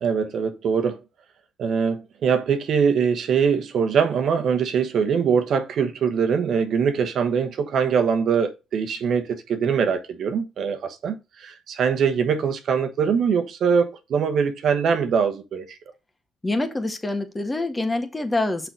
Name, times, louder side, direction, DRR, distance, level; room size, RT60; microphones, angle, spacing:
voice 1, 0.0-1.0 1.6-15.8, right 6 dB, 65° right, 1.2 m, -22 dB
voice 2, 16.4-18.7, left 2 dB, 20° left, 1.7 m, -26 dB
6.3 x 4.8 x 5.2 m
supercardioid pair, 55°, 0 cm